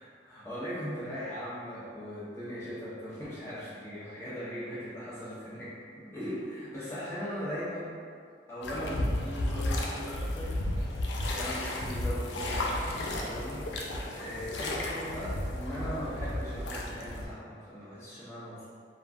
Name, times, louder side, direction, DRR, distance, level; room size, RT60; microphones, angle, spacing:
voice 1, 0.0-8.0 8.5-10.5 11.2-18.7, equal, 15° left, -11 dB, 0.8 m, -39 dB
sound 1, 8.6-17.3, left 1 dB, 85° left, 0.4 m, -33 dB
3.0 x 2.3 x 2.4 m, 2.1 s
head